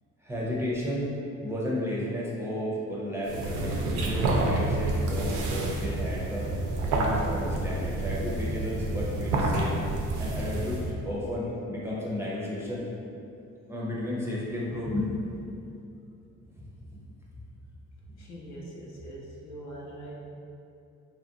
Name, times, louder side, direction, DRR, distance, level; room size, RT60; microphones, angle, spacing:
voice 1, 0.2-6.5 6.9-9.8 10.2-12.9 13.7-15.2 16.5-16.6 16.9-17.0, left 1 dB, 10° right, -6 dB, 0.5 m, -33 dB
sound 1, 3.2-10.9, right 2 dB, 80° right, 0.5 m, -29 dB
voice 2, 18.2-20.1, right 1 dB, 60° left, -4 dB, 0.7 m, -42 dB
2.9 x 2.5 x 2.6 m, 2.7 s
cardioid pair, 90°, 30 cm